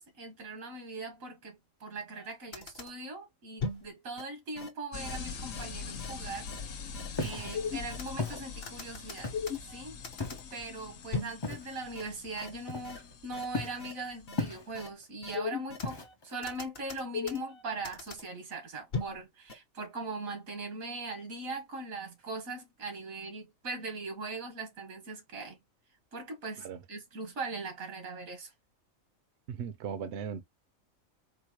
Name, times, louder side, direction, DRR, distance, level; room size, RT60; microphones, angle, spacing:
voice 1, 0.0-9.3 9.7-10.0 10.5-25.6 26.1-28.5, right 3 dB, 85° right, 1.8 m, -40 dB
sound 1, 2.2-2.3 2.5-2.9 3.6-3.9 4.2-4.3 4.6-4.7 5.0-5.2 5.5-5.6 6.0-6.1 6.5-6.6 6.9-7.1 7.4-8.1 8.6-9.8 10.0-10.4 11.1-11.4 11.9-12.0 12.4-12.5 12.8-13.0 13.3-13.4 13.8-13.9 14.3-14.4 14.7-14.9 15.2-15.9 16.4-17.5 17.8-18.2 18.9-19.2 19.5-19.6, left 5 dB, 50° left, 1.1 m, -36 dB
sound 2, 4.9-14.9, left 5 dB, 75° left, 1.2 m, -44 dB
Walk footsteps, 7.1-7.5 8.2-8.4 9.2-9.6 10.2-10.5 11.4-11.7 12.7-13.1 13.5-13.8 14.4-14.9 15.8-16.3, left 3 dB, 35° left, 0.4 m, -36 dB
voice 2, 29.5-30.4, right 7 dB, 65° right, 0.8 m, -37 dB
4.6 x 2.1 x 2.9 m
omnidirectional pair, 1.4 m